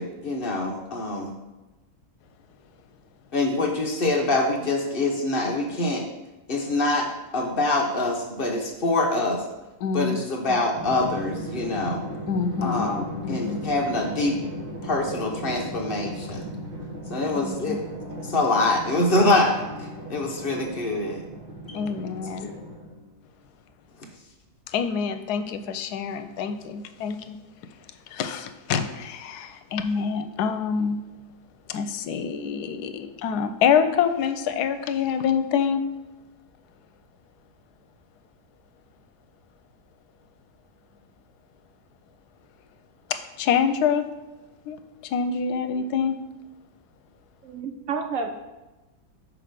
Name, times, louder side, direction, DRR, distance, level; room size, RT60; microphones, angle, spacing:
voice 1, 0.0-1.4 3.3-6.1 6.5-9.4 9.9-12.0 12.6-14.4 14.8-16.5 17.1-17.8 18.2-21.2 21.7-21.8 22.4-22.6, left 2 dB, 45° left, 1 dB, 0.8 m, -25 dB
voice 2, 9.8-10.2 10.5-10.6 12.3-12.9 13.2-13.6 17.4-17.8 21.7-22.5 24.7-27.4 28.1-31.0 31.7-35.8 43.1-44.0 44.7-44.8 45.1-46.2, left 7 dB, 85° left, 9 dB, 1.1 m, -26 dB
Drum, 10.8-23.1, equal, 30° right, 1.5 m, -36 dB
voice 3, 47.4-48.3, right 5 dB, 65° right, 4 dB, 1.0 m, -30 dB
5.9 x 4.9 x 5.1 m, 1.1 s
omnidirectional pair, 1.7 m